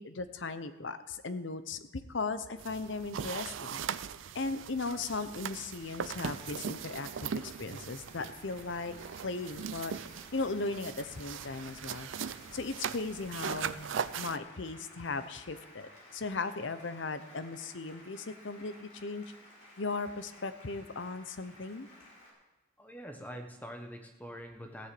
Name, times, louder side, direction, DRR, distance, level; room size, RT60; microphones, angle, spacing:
voice 1, 0.0-3.8 4.3-9.0 9.2-9.9 10.3-12.1 12.5-19.2 19.8-21.9, left 3 dB, 65° left, 11 dB, 0.8 m, -37 dB
sound 1, 2.6-14.4, right 7 dB, 70° right, 0.4 m, -40 dB
Applause, 4.3-22.3, left 1 dB, 40° left, 4.5 m, -55 dB
voice 2, 22.8-24.9, equal, 10° left, 4 dB, 1.1 m, -44 dB
15.5 x 6.8 x 7.7 m, 1.1 s
head